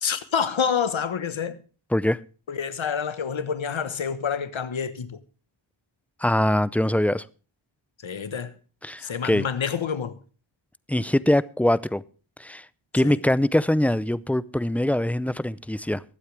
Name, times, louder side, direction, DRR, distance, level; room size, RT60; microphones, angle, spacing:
voice 1, 0.0-1.6 2.5-5.2 8.0-8.5 9.0-10.2 13.0-13.2, left 7 dB, 70° left, 1.3 m, -28 dB
voice 2, 6.2-7.2 8.8-9.5 10.9-12.0 12.4-12.6 12.9-16.0, left 1 dB, 5° left, 0.5 m, -23 dB
23.0 x 8.1 x 3.3 m
cardioid pair, 60°, 48 cm